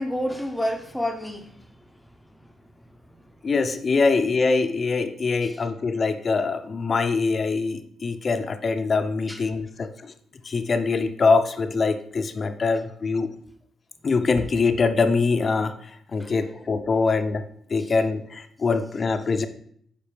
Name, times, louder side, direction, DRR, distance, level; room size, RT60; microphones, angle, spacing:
voice 1, 0.0-2.4 2.7-3.5 5.4-5.6 9.3-9.4 16.2-16.3 17.8-17.9, equal, 5° left, 0.8 m, -32 dB
voice 2, 3.4-10.1 10.4-13.3 14.0-19.5, left 4 dB, 45° left, 0.6 m, -23 dB
8.7 x 5.0 x 3.3 m
hypercardioid pair, 45°, 0 cm